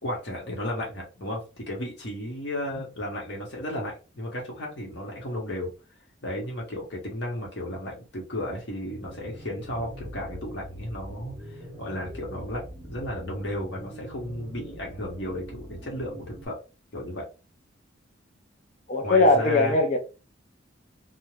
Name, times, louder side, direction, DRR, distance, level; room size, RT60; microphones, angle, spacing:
voice 1, 0.0-5.7 6.2-16.6 16.9-17.3 19.0-19.8, left 1 dB, 55° left, 1.0 m, -34 dB
sound 1, 9.0-16.5, equal, 20° right, 0.8 m, -42 dB
voice 2, 18.9-20.0, left 2 dB, 35° left, 0.4 m, -20 dB
2.5 x 2.1 x 3.0 m
head